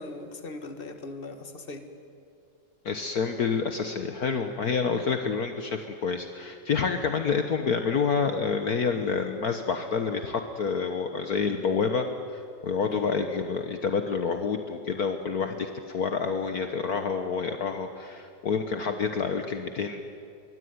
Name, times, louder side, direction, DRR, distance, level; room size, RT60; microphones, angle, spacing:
voice 1, 0.0-1.9 12.9-13.1, left 2 dB, 30° left, 7 dB, 1.9 m, -39 dB
voice 2, 2.9-12.1 12.3-20.1, left 5 dB, 55° left, 6 dB, 1.6 m, -28 dB
25.0 x 23.0 x 9.6 m, 2.4 s
omnidirectional pair, 2.0 m